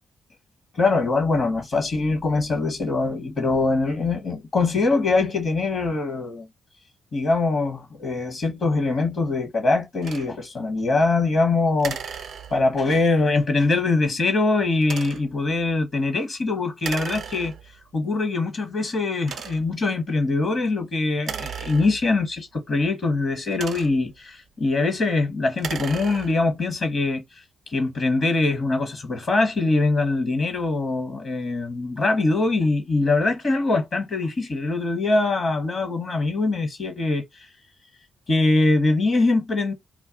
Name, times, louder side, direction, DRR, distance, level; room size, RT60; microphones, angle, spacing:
voice 1, 0.7-6.5 7.1-12.2 12.5-17.5 17.9-27.2 27.7-37.5 38.3-39.7, left 3 dB, 55° left, 0.9 m, -23 dB
sound 1, 10.0-10.3 11.8-12.8 14.8-15.4 16.8-17.8 18.5-18.6 19.2-19.8 21.2-22.3 23.3-24.2 25.5-26.5, right 7 dB, 65° right, 0.5 m, -35 dB
2.4 x 2.3 x 3.6 m
hypercardioid pair, 45°, 0 cm